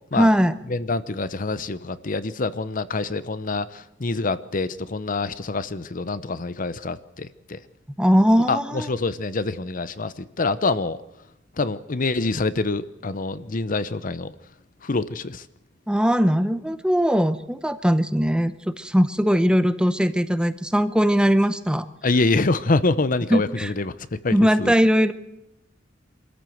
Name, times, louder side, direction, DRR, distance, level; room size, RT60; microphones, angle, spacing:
voice 1, 0.1-0.6 8.0-8.9 15.9-21.9 23.3-23.7 24.3-25.1, equal, 5° right, 12 dB, 0.7 m, -20 dB
voice 2, 0.7-7.6 8.5-11.0 11.6-14.3 14.8-15.4 22.0-24.7, left 3 dB, 45° left, 14 dB, 0.8 m, -26 dB
24.5 x 14.0 x 7.8 m, 0.88 s
head